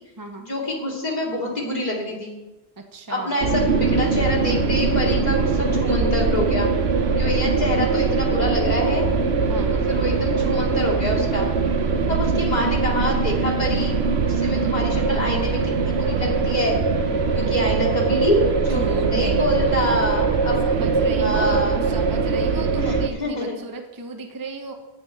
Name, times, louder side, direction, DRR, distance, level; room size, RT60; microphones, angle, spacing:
voice 1, 0.4-2.4 3.1-6.7 7.2-9.1 9.7-11.5 12.1-16.8 17.3-20.6 21.2-21.8 22.8-23.6, left 1 dB, 40° left, -4 dB, 2.7 m, -26 dB
voice 2, 2.8-3.4 9.5-9.7 18.7-20.0 20.6-24.7, right 2 dB, 20° right, 4 dB, 0.8 m, -34 dB
sound 1, 3.4-23.1, right 4 dB, 70° right, 1.1 m, -22 dB
9.0 x 6.4 x 8.5 m, 1.1 s
omnidirectional pair, 1.1 m